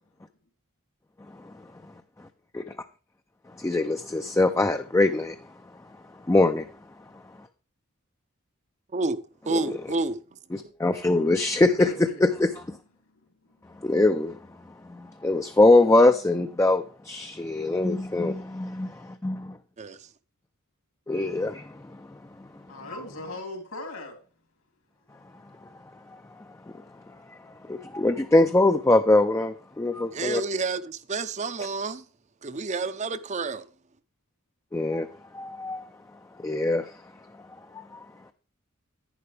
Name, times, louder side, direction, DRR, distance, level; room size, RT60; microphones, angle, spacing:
voice 1, 3.6-5.4 6.3-6.7 9.5-9.6 10.5-12.6 13.8-14.4 14.9-19.6 21.1-22.5 27.6-30.4 34.7-35.1 35.3-35.8 36.4-36.9 37.7-38.0, left 2 dB, 15° left, 0.4 m, -23 dB
voice 2, 9.4-10.2 10.6-10.7 19.8-20.1 30.1-32.1 32.4-33.6, right 3 dB, 35° right, 0.6 m, -29 dB
voice 3, 11.8-12.2 22.7-24.2, left 2 dB, 80° left, 3.0 m, -38 dB
11.0 x 9.5 x 3.3 m
head